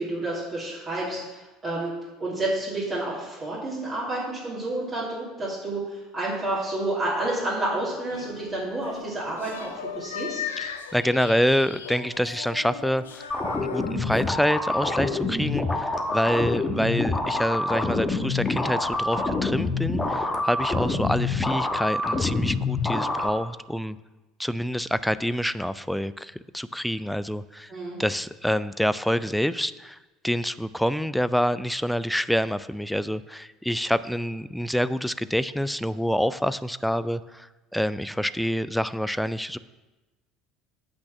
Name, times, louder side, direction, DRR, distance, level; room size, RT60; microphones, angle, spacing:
voice 1, 0.0-1.9 2.2-10.4 16.1-16.4 27.7-28.0, right 2 dB, 35° right, -7 dB, 2.8 m, -30 dB
sound 1, 8.1-14.2, left 8 dB, 75° left, 0.5 m, -38 dB
voice 2, 10.6-13.3 13.6-24.0 24.4-27.7 28.0-30.0 30.2-39.6, equal, ahead, 15 dB, 0.4 m, -27 dB
sound 2, 13.3-23.3, left 3 dB, 20° left, 1.2 m, -26 dB
8.6 x 6.0 x 5.9 m, 1.1 s
figure-of-eight pair, 65°, 0 cm